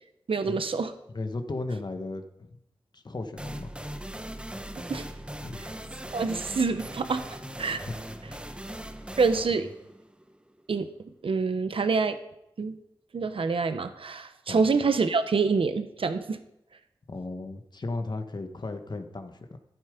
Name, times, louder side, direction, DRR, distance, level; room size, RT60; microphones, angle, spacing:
voice 1, 0.3-0.9 4.9-5.1 6.1-7.2 7.6-7.8 9.2-9.7 10.7-10.9 11.2-12.2 12.6-12.7 13.1-16.4, right 4 dB, 75° right, 9 dB, 1.1 m, -26 dB
voice 2, 1.1-2.5 2.9-3.7 5.4-5.6 7.9-8.0 9.5-9.6 14.5-14.6 17.1-19.6, left 2 dB, 50° left, 7 dB, 1.4 m, -35 dB
sound 1, 3.4-10.8, right 1 dB, 10° right, 1.1 m, -40 dB
13.0 x 11.5 x 5.2 m, 0.82 s
wide cardioid pair, 60°, 9 cm